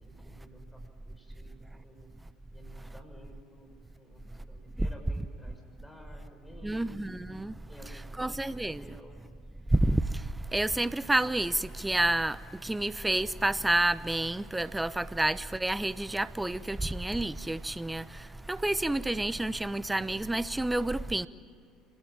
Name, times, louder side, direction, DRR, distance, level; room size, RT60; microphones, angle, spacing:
voice 1, 0.0-2.1 2.5-7.1 7.7-9.2, equal, 10° left, 6.5 m, -54 dB
voice 2, 6.6-7.5 8.2-8.8 9.7-10.0 10.5-18.0 18.5-21.3, right 1 dB, 10° right, 0.8 m, -29 dB
27.5 x 20.0 x 8.9 m
hypercardioid pair, 65°, 0 cm